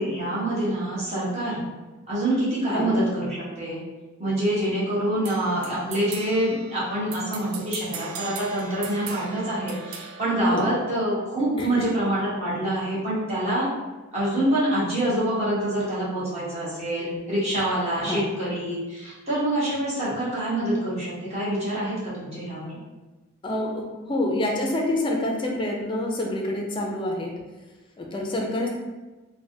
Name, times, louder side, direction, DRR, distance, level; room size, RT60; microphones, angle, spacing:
voice 1, 0.0-1.6 2.1-3.8 4.2-13.7 14.1-22.8, right 1 dB, 30° right, -9 dB, 1.1 m, -26 dB
sound 1, 5.2-11.2, right 6 dB, 85° right, 0.4 m, -40 dB
voice 2, 23.4-27.3 28.0-28.7, left 1 dB, 25° left, 0 dB, 0.4 m, -27 dB
3.3 x 2.1 x 2.6 m, 1.2 s
head